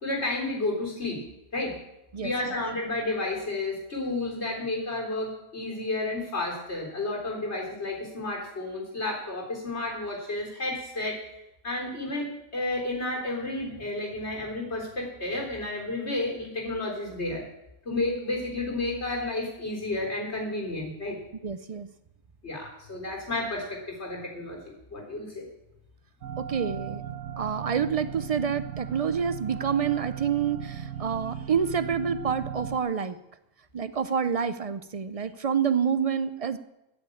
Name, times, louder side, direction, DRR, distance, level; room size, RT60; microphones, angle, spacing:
voice 1, 0.0-1.2 1.5-1.8 2.2-11.2 11.6-17.4 17.9-21.2 22.4-24.6 24.9-25.4, left 2 dB, 55° left, -1 dB, 4.0 m, -31 dB
voice 2, 21.4-21.9 26.4-27.0 27.4-33.2 33.7-36.6, right 7 dB, 60° right, 13 dB, 0.3 m, -28 dB
sound 1, 26.2-32.8, right 9 dB, 85° right, 1.2 m, -37 dB
13.0 x 7.3 x 8.5 m, 0.91 s
omnidirectional pair, 1.3 m